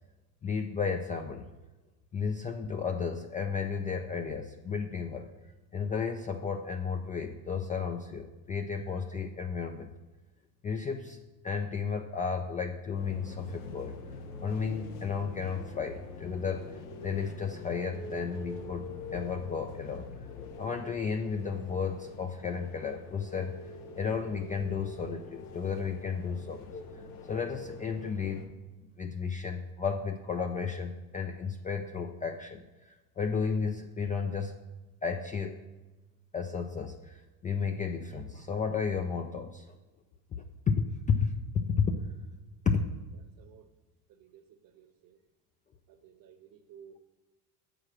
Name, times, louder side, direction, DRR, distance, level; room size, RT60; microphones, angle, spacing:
voice 1, 0.4-1.5 2.1-5.3 5.7-9.9 10.6-11.2 11.4-13.9 14.4-20.1 20.6-23.6 24.0-28.5 29.0-34.6 35.0-35.6 36.3-39.8 40.3-41.3 41.7-41.9 42.7-42.8, left 5 dB, 20° left, 0.3 m, -33 dB
sound 1, 12.9-28.5, left 3 dB, 90° left, 1.1 m, -45 dB
voice 2, 43.4-43.7 44.1-45.2 45.9-47.0, right 8 dB, 50° right, 1.0 m, -55 dB
7.5 x 5.0 x 6.0 m
supercardioid pair, 100°, 45 cm